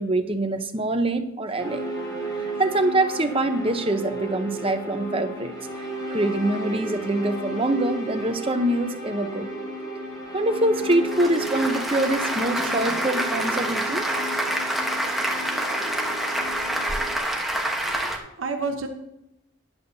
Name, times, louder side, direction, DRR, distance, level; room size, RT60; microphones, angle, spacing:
voice 1, 0.0-1.8 2.6-9.5 10.3-14.1, right 1 dB, 25° right, 8 dB, 0.8 m, -24 dB
sound 1, 1.6-17.2, right 1 dB, 20° left, 3.8 m, -33 dB
Applause, 10.8-18.2, right 1 dB, ahead, 1.1 m, -27 dB
voice 2, 17.9-18.9, right 4 dB, 75° right, 4 dB, 1.0 m, -31 dB
13.5 x 10.5 x 2.8 m, 0.86 s
head